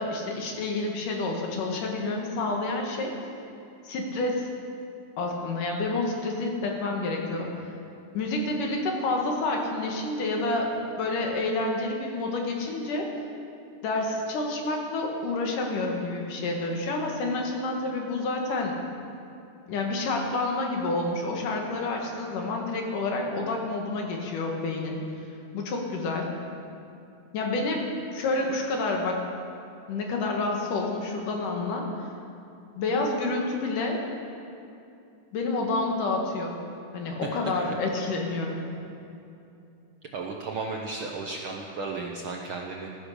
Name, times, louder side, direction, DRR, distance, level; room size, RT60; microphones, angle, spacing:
voice 1, 0.0-3.1 3.8-4.5 5.2-7.5 8.1-10.7 11.0-13.1 13.8-18.8 19.7-25.0 25.5-26.3 27.3-29.2 29.9-31.9 32.8-34.0 35.3-36.6 36.9-38.6, left 2 dB, 80° left, 1 dB, 3.4 m, -29 dB
voice 2, 37.2-37.7 40.1-42.9, right 4 dB, 65° right, 0 dB, 1.3 m, -34 dB
15.0 x 14.0 x 6.5 m, 2.7 s
omnidirectional pair, 3.6 m